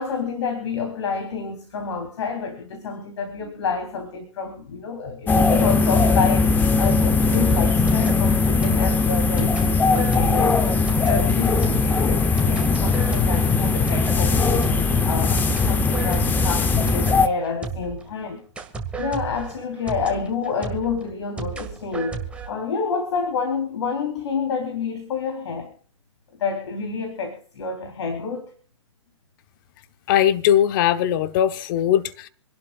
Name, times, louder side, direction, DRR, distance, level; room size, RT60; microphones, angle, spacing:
voice 1, 0.0-10.5 10.9-14.7 15.0-18.4 19.0-22.2 22.5-25.7 26.4-28.5, left 5 dB, 60° left, 3.5 m, -28 dB
sound 1, 5.3-17.3, left 4 dB, 10° left, 0.8 m, -19 dB
sound 2, 7.5-18.1 18.6-22.5, right 5 dB, 5° right, 1.9 m, -34 dB
voice 2, 30.1-32.3, left 10 dB, 40° left, 1.0 m, -20 dB
27.5 x 12.0 x 2.4 m
hypercardioid pair, 135°, 17 cm